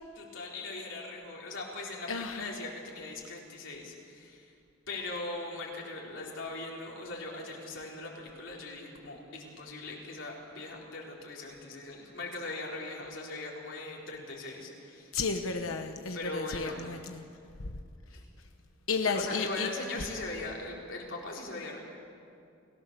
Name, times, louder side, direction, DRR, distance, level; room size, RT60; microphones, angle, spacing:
voice 1, 0.1-4.5 4.9-15.1 16.1-16.9 18.1-18.2 19.0-21.8, left 2 dB, 65° left, -2 dB, 4.1 m, -40 dB
voice 2, 2.1-2.5 15.1-17.2 17.6-17.7 18.9-19.7 20.0-20.1, left 4 dB, 85° left, 6 dB, 1.1 m, -33 dB
29.5 x 16.0 x 6.9 m, 2.5 s
head